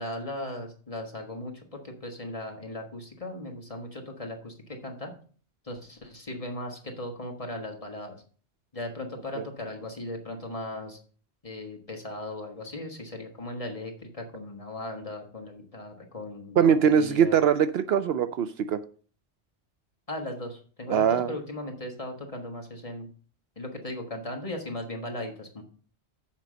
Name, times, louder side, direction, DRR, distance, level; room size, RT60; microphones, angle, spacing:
voice 1, 0.0-5.1 5.6-8.2 8.7-11.0 11.4-17.4 20.1-23.1 23.6-25.6, left 1 dB, 30° left, 1 dB, 1.5 m, -37 dB
voice 2, 16.6-18.8 20.9-21.3, right 8 dB, 65° right, 12 dB, 0.8 m, -22 dB
7.5 x 5.3 x 6.2 m, 0.42 s
omnidirectional pair, 1.2 m